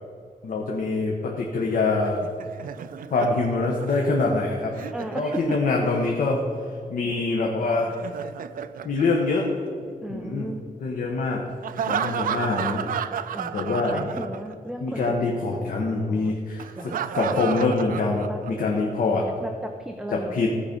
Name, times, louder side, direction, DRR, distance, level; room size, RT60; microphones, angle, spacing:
voice 1, 0.4-2.2 3.1-4.9 5.1-6.4 6.9-7.9 8.8-9.5 10.1-10.5 10.8-11.4 11.8-12.8 13.5-14.1 14.8-19.3 20.1-20.5, left 3 dB, 80° left, 0 dB, 1.1 m, -25 dB
Laughter, 2.0-6.1 7.8-9.9 11.6-14.7 15.0-15.1 16.6-18.7, right 8 dB, 75° right, 0.4 m, -32 dB
voice 2, 4.9-5.6 10.0-10.6 13.3-15.2 16.1-16.4 16.8-17.0 18.1-18.4 19.2-20.5, right 1 dB, 5° right, 4 dB, 0.5 m, -35 dB
15.0 x 5.0 x 5.2 m, 2.3 s
wide cardioid pair, 170°, 14 cm